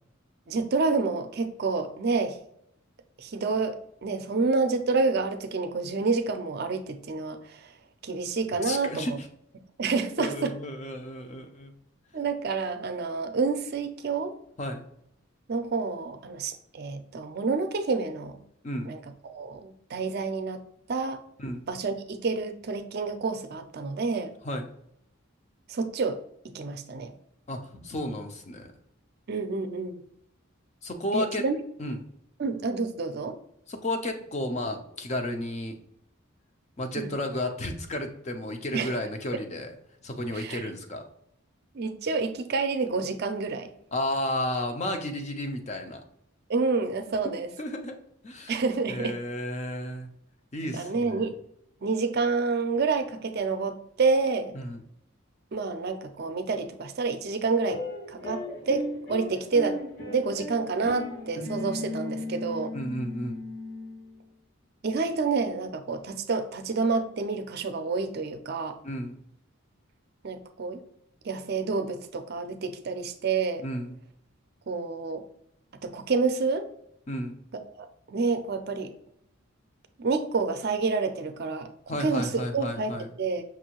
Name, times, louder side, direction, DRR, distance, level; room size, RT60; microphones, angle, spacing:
voice 1, 0.5-2.4 3.2-7.7 8.0-9.2 9.8-10.5 12.1-14.4 15.5-18.4 18.9-19.0 19.2-20.6 20.9-21.2 21.7-24.3 25.7-26.2 26.5-27.1 29.3-30.0 31.1-31.5 32.4-33.4 37.0-37.1 38.7-38.9 40.3-40.6 41.7-43.7 46.5-47.5 48.5-49.2 50.7-51.4 51.8-54.5 55.5-57.8 58.1-59.8 60.1-62.7 64.8-68.8 70.2-70.8 71.2-73.6 74.7-75.2 75.8-76.7 77.8-78.9 80.0-81.7 82.0-82.9 83.2-83.4, right 4 dB, 50° right, 8 dB, 0.5 m, -28 dB
voice 2, 8.6-9.3 10.2-11.7 14.6-14.9 18.6-18.9 21.4-21.6 24.4-24.7 27.5-28.7 30.8-31.4 31.8-32.0 33.7-35.8 36.8-39.7 40.0-41.0 43.9-46.0 47.2-47.3 47.6-47.9 48.2-48.6 48.9-50.1 50.5-51.2 54.5-54.8 62.7-63.4 68.8-69.1 73.6-73.9 77.1-77.4 81.9-83.1, left 1 dB, 35° left, 5 dB, 0.6 m, -32 dB
sound 1, 57.7-64.2, left 1 dB, 50° left, 1.6 m, -36 dB
6.0 x 2.7 x 2.9 m, 0.73 s
head